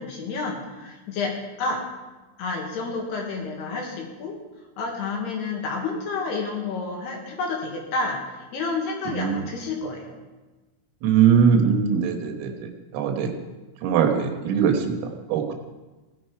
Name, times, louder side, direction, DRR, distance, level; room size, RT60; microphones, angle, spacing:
voice 1, 0.0-1.3 1.6-1.8 2.4-4.4 4.8-10.1, left 3 dB, 65° left, 0 dB, 3.1 m, -30 dB
voice 2, 9.1-9.4 11.0-13.3 13.8-15.0 15.3-15.6, right 7 dB, 80° right, 4 dB, 4.0 m, -21 dB
17.5 x 10.5 x 4.8 m, 1.2 s
omnidirectional pair, 5.9 m